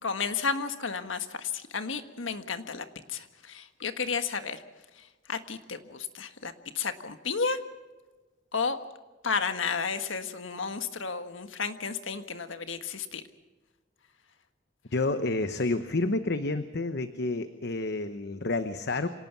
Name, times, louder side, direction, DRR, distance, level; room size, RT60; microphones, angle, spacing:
voice 1, 0.0-4.6 5.0-7.6 8.5-8.8 9.2-13.2, left 5 dB, 90° left, 9 dB, 1.6 m, -32 dB
voice 2, 14.9-19.1, left 2 dB, 60° left, 10 dB, 1.0 m, -29 dB
26.0 x 18.0 x 6.0 m, 1.2 s
head